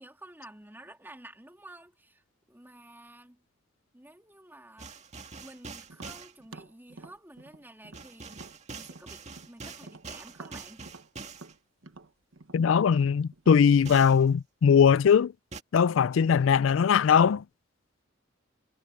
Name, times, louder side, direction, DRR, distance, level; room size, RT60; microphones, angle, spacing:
voice 1, 0.0-3.4 3.9-5.0 5.4-8.4 8.7-10.9, right 1 dB, 10° right, 3.3 m, -51 dB
sound 1, 4.8-6.3 7.9-11.5 13.9-14.2 15.5-15.6, right 4 dB, 35° right, 2.0 m, -44 dB
Tap, 5.9-9.5 9.8-14.2, right 3 dB, 70° right, 1.2 m, -49 dB
voice 2, 12.5-15.3 15.7-17.4, left 7 dB, 70° left, 0.4 m, -21 dB
head